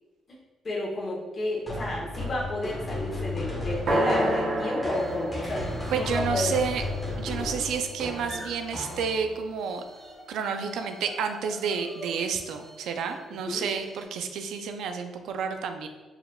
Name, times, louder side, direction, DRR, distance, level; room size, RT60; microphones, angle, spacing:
voice 1, 0.6-6.6 13.5-13.6, left 1 dB, 40° left, -4 dB, 1.2 m, -31 dB
sound 1, 1.7-9.5, left 2 dB, 15° left, 1.1 m, -35 dB
sound 2, 3.9-7.8, right 1 dB, 60° right, 0.9 m, -29 dB
sound 3, 4.9-5.2 5.5-6.3 6.6-9.3 9.5-14.0, equal, 10° right, 1.2 m, -47 dB
voice 2, 5.9-6.8 7.2-9.8 10.3-15.9, right 6 dB, 80° right, 7 dB, 0.3 m, -30 dB
4.5 x 3.4 x 2.2 m, 1.2 s
cardioid pair, 90°, 0 cm